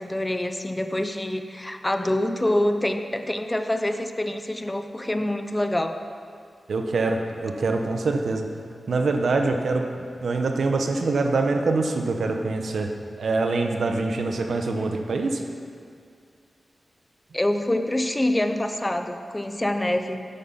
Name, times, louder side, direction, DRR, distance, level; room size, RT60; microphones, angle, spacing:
voice 1, 0.0-6.0 17.3-20.3, left 1 dB, 15° left, 7 dB, 0.6 m, -26 dB
voice 2, 6.7-8.5 8.9-9.9 10.2-12.9 13.2-15.4, right 3 dB, 75° right, 4 dB, 0.9 m, -24 dB
10.0 x 9.1 x 5.7 m, 2.2 s
wide cardioid pair, 130°, 0 cm